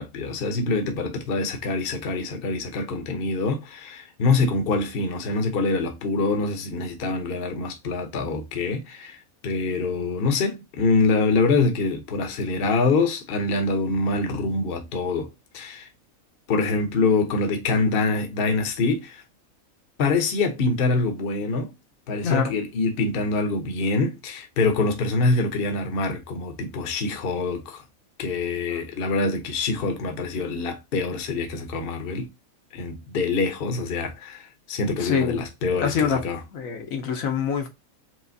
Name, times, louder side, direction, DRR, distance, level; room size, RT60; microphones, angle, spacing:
voice 1, 0.0-15.3 15.5-15.9 16.5-19.2 20.0-21.7 22.1-27.8 28.2-32.3 32.7-36.4, left 3 dB, 50° left, 0.9 m, -25 dB
voice 2, 35.0-35.4 35.8-36.2 36.5-37.7, left 6 dB, 75° left, 1.3 m, -25 dB
5.0 x 3.1 x 2.6 m
omnidirectional pair, 1.4 m